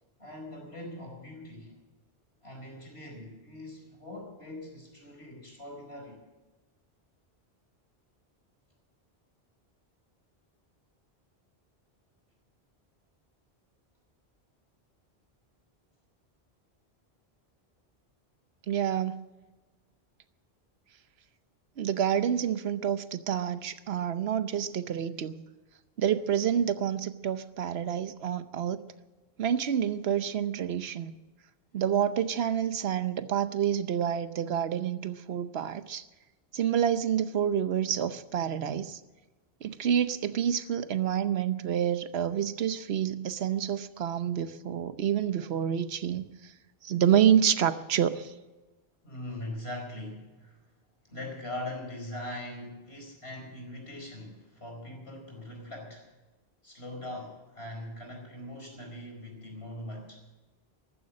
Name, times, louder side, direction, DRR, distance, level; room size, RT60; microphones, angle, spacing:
voice 1, 0.2-1.7 2.4-6.2 49.0-50.6 51.1-56.1 56.6-60.2, left 1 dB, 75° left, 1 dB, 5.0 m, -41 dB
voice 2, 18.7-19.2 21.8-25.4 26.0-28.8 29.4-31.1 31.7-36.0 36.5-39.0 39.6-46.3 46.8-48.3, right 9 dB, 75° right, 12 dB, 1.0 m, -28 dB
14.0 x 14.0 x 6.4 m, 1.2 s
omnidirectional pair, 1.1 m